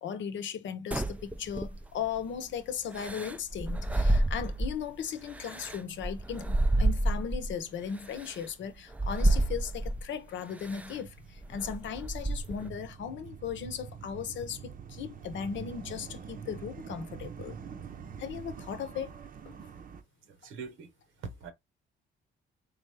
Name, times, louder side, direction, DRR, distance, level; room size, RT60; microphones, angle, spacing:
voice 1, 0.0-17.5 18.2-19.1 19.5-19.6, left 7 dB, 70° left, 0.8 m, -37 dB
sound 1, 0.9-2.1 2.9-4.9 5.3-7.6 8.2-8.3 8.9-10.1 10.6-11.0 11.4-12.7, right 1 dB, 5° right, 0.4 m, -29 dB
sound 2, 1.2-20.0, right 7 dB, 45° right, 0.7 m, -48 dB
voice 2, 20.2-20.9 21.2-21.5, right 5 dB, 85° right, 1.1 m, -42 dB
3.9 x 3.4 x 3.3 m
cardioid pair, 90°, 20 cm